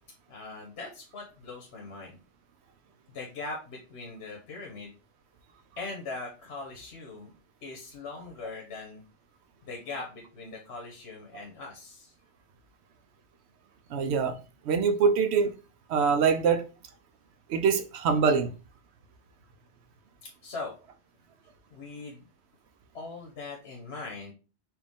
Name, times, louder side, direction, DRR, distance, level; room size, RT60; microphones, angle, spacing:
voice 1, 0.3-2.2 3.1-4.9 5.8-7.3 7.6-9.0 9.6-12.1 20.2-20.7 21.7-22.2 22.9-24.3, left 3 dB, 80° left, 1.2 m, -40 dB
voice 2, 13.9-14.4 14.6-15.5 15.9-16.6 17.5-18.5, right 6 dB, 80° right, 0.8 m, -24 dB
4.5 x 2.4 x 3.5 m
omnidirectional pair, 1.1 m